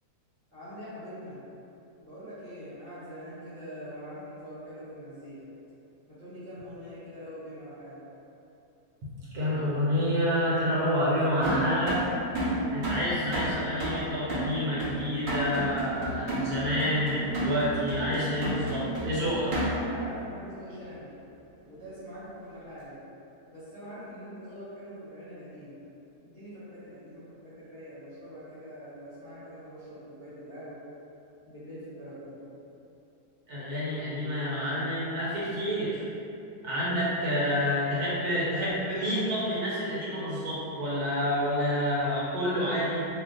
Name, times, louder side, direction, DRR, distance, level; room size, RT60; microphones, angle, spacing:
voice 1, 0.5-1.4 2.0-5.5 6.1-8.0 19.8-21.1 21.6-23.0 23.5-25.8 26.2-30.8 31.5-32.4, equal, 10° left, -13 dB, 0.7 m, -44 dB
voice 2, 9.3-12.0 12.7-19.5 33.5-36.0 36.6-43.1, equal, 70° right, -8 dB, 1.2 m, -28 dB
sound 1, 11.4-20.0, right 1 dB, 85° right, 0.4 m, -31 dB
2.8 x 2.1 x 3.7 m, 2.9 s
omnidirectional pair, 1.8 m